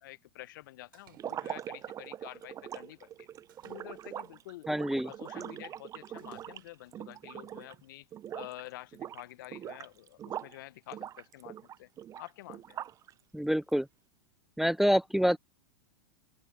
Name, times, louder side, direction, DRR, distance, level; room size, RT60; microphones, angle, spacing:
voice 1, 0.0-3.3 3.6-4.7 5.0-8.1 8.3-11.9 12.2-12.8, left 17 dB, 65° left, 0.8 m, -48 dB
Splash splatter, 0.9-1.9 3.5-4.6 6.2-7.0, right 13 dB, 70° right, 3.4 m, -64 dB
sound 1, 1.1-7.8 8.1-8.6 8.9-10.6 10.9-13.1, right 10 dB, 30° right, 0.7 m, -42 dB
voice 2, 4.7-5.1 13.3-13.9 14.6-15.4, equal, ahead, 0.4 m, -26 dB
open air
hypercardioid pair, 100°, 12 cm